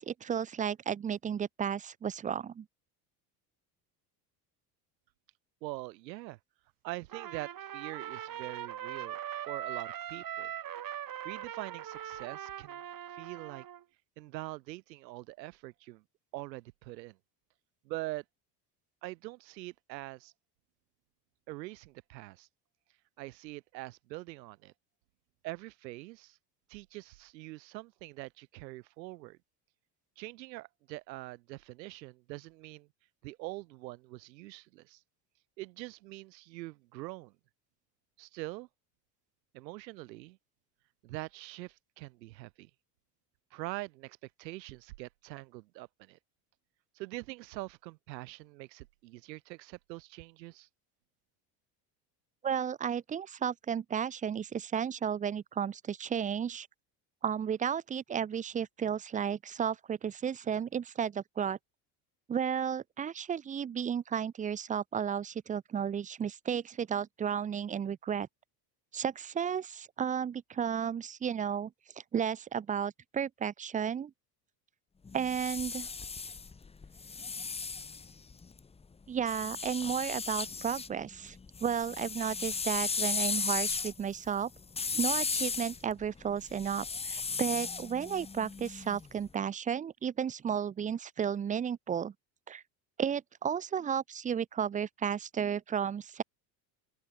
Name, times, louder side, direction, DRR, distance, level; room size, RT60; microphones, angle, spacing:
voice 1, 0.0-2.7 52.4-56.7 57.2-61.6 62.3-68.3 68.9-71.7 72.1-74.1 75.1-75.9 79.1-81.4 81.6-84.5 85.0-92.1 92.5-92.6 93.0-96.2, right 8 dB, 20° right, 0.4 m, -33 dB
voice 2, 5.6-6.4 6.8-9.2 9.5-10.5 11.0-12.8 13.1-13.7 14.2-16.0 16.3-17.2 17.8-18.2 19.0-20.3 21.5-22.5 23.2-24.7 25.4-26.4 26.7-29.4 30.2-32.9 33.2-35.0 35.6-37.3 38.2-38.7 39.5-40.4 41.0-42.7 43.5-46.2 46.9-50.7, right 19 dB, 85° right, 3.1 m, -44 dB
Trumpet, 7.1-13.8, right 11 dB, 40° right, 2.7 m, -41 dB
sound 1, 75.0-78.6 79.3-80.9 81.3-89.2, left 4 dB, 10° left, 0.7 m, -36 dB
open air
supercardioid pair, 90°, 49 cm